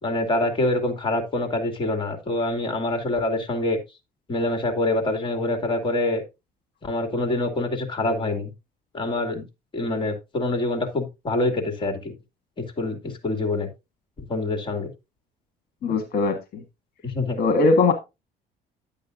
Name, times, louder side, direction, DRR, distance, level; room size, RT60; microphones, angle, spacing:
voice 1, 0.0-3.8 4.3-6.2 6.8-8.5 8.9-9.4 9.7-12.1 12.6-13.7 14.3-14.9 15.9-16.0 17.0-17.4, left 2 dB, 30° left, 5 dB, 2.6 m, -25 dB
voice 2, 15.8-16.6 17.4-17.9, left 3 dB, 65° left, 7 dB, 1.5 m, -20 dB
10.5 x 8.5 x 2.6 m, 0.24 s
cardioid pair, 110°, 17 cm